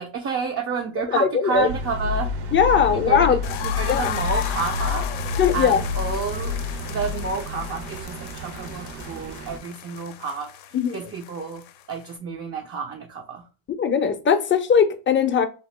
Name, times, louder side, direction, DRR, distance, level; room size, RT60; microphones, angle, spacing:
voice 1, 0.0-2.3 2.9-3.4 3.6-5.1 5.5-6.6 6.9-10.5 10.9-13.4, right 5 dB, 30° right, 0.5 m, -30 dB
voice 2, 1.1-1.7 2.5-3.4 3.9-4.1 5.4-5.8 10.7-11.1 13.8-15.5, left 7 dB, 25° left, 0.5 m, -19 dB
sound 1, 1.5-9.6, right 5 dB, 55° right, 0.8 m, -38 dB
sound 2, 1.7-8.9, left 5 dB, 90° right, 0.6 m, -29 dB
sound 3, 3.4-12.2, left 11 dB, 75° left, 0.6 m, -36 dB
2.9 x 2.7 x 3.1 m
cardioid pair, 95°, 47 cm